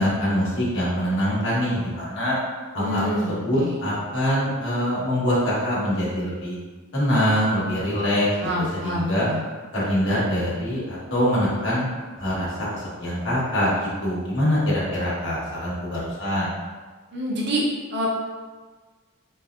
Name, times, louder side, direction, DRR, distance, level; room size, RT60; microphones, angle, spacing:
voice 1, 0.0-2.4 2.7-6.6 6.9-9.3 9.7-11.9 12.2-16.5, equal, 60° left, -7 dB, 1.2 m, -24 dB
voice 2, 2.8-3.7 8.4-9.4 17.1-17.6 17.9-18.1, equal, 55° right, -3 dB, 0.6 m, -27 dB
3.4 x 3.0 x 2.3 m, 1.3 s
head